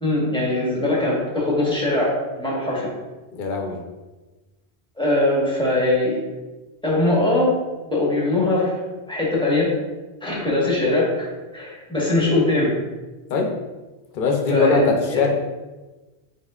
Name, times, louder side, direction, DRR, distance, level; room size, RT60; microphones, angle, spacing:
voice 1, 0.0-2.9 5.0-6.2 6.8-7.5 7.8-8.8 9.1-9.7 10.2-12.7 14.5-15.2, left 2 dB, 5° left, -6 dB, 1.2 m, -21 dB
voice 2, 3.3-3.8 13.3-13.5 14.1-15.3, left 4 dB, 60° left, 1 dB, 0.8 m, -21 dB
5.4 x 4.1 x 2.4 m, 1.2 s
omnidirectional pair, 1.0 m